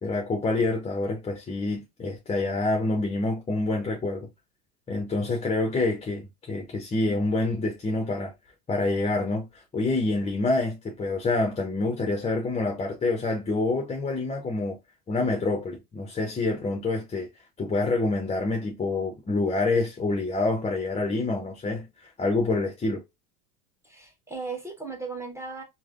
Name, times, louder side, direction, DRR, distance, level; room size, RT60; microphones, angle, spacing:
voice 1, 0.0-4.3 4.9-8.3 8.7-14.8 15.1-17.3 17.6-23.0, left 2 dB, 15° left, 0.5 m, -27 dB
voice 2, 23.8-25.6, right 4 dB, 5° right, 0.9 m, -36 dB
3.2 x 2.1 x 2.3 m
hypercardioid pair, 80°, 44 cm